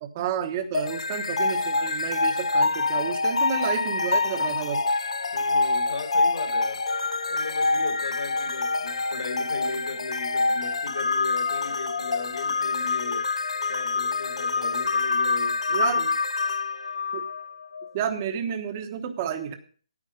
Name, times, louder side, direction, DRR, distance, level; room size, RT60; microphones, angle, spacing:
voice 1, 0.0-4.8 15.7-16.0 17.1-17.3 17.9-19.5, right 8 dB, 25° right, 7 dB, 1.2 m, -30 dB
sound 1, 0.7-17.9, left 3 dB, 70° left, 0.9 m, -26 dB
voice 2, 5.3-6.8 7.3-13.3 13.7-16.1, left 4 dB, 55° left, 5 dB, 2.3 m, -37 dB
9.8 x 8.8 x 5.2 m, 0.42 s
hypercardioid pair, 165°, 3 cm